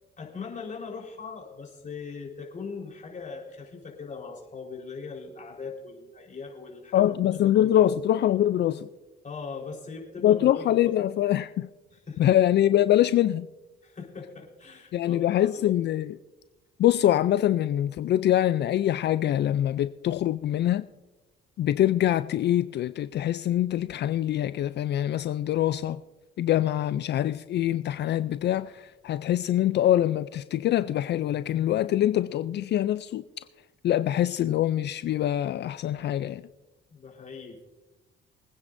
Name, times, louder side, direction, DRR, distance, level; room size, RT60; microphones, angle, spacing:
voice 1, 0.2-7.2 7.6-7.7 9.2-10.9 11.9-12.3 13.8-15.8 36.9-37.7, left 5 dB, 40° left, 4.1 m, -40 dB
voice 2, 6.9-8.9 10.2-11.7 12.2-13.5 14.9-16.2 16.8-20.8 21.6-26.0 26.4-33.2 33.8-36.4, left 12 dB, 60° left, 0.4 m, -24 dB
24.5 x 9.6 x 2.6 m
cardioid pair, 90°, 20 cm